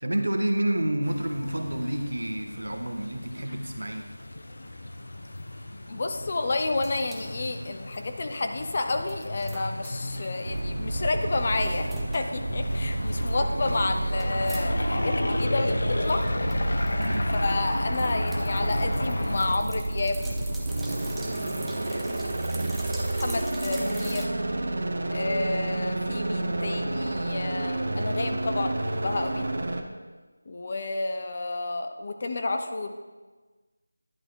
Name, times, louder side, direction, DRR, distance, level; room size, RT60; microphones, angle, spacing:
voice 1, 0.0-4.1 16.9-17.3, right 1 dB, 75° right, 5 dB, 1.4 m, -29 dB
sound 1, 1.0-19.5, left 1 dB, 60° left, 1.3 m, -34 dB
voice 2, 5.9-16.2 17.3-20.2 21.9-24.3 25.1-29.5 30.5-32.9, left 2 dB, 35° left, 6 dB, 0.9 m, -30 dB
Tap Running & water draining in sink, 6.8-8.7 9.0-10.8 11.1-11.2 11.5-12.4 12.7-14.7 14.9-15.0 15.3-24.3, right 2 dB, 5° right, 0.6 m, -45 dB
sound 2, 10.5-29.8, right 1 dB, 55° right, 1.1 m, -30 dB
11.0 x 10.5 x 3.8 m, 1.3 s
figure-of-eight pair, 165°, 0 cm